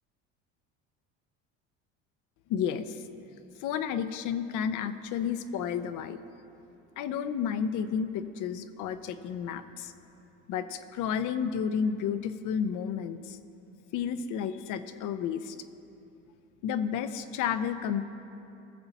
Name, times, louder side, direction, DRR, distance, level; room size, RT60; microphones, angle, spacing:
voice 1, 2.5-3.0 3.6-6.2 7.0-9.9 10.5-13.4 13.9-15.6 16.6-18.0, left 7 dB, 65° left, 10 dB, 0.7 m, -31 dB
18.0 x 6.9 x 4.1 m, 2.8 s
supercardioid pair, 80°, 34 cm